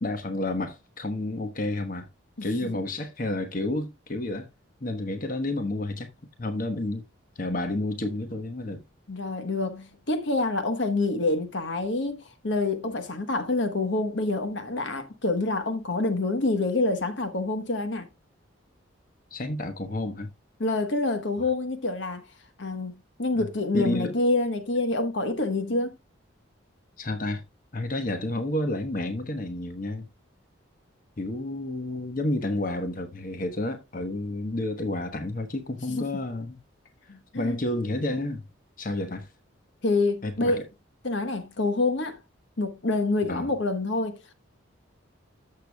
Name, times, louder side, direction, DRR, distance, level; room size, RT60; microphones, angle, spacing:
voice 1, 0.0-2.1 2.4-4.5 4.8-6.1 6.4-7.0 7.4-8.8 19.3-20.3 23.3-23.5 23.7-24.2 27.0-27.4 27.7-30.1 31.2-36.6 37.4-38.4 38.8-39.3 40.2-40.6 43.3-43.5, left 1 dB, 40° left, 1.1 m, -30 dB
voice 2, 2.4-2.8 9.1-18.1 20.6-22.2 22.6-22.9 23.2-26.0 35.9-36.1 37.1-37.6 39.8-40.7 41.0-42.2 42.6-44.3, left 2 dB, 65° left, 1.1 m, -27 dB
13.5 x 6.7 x 2.3 m
head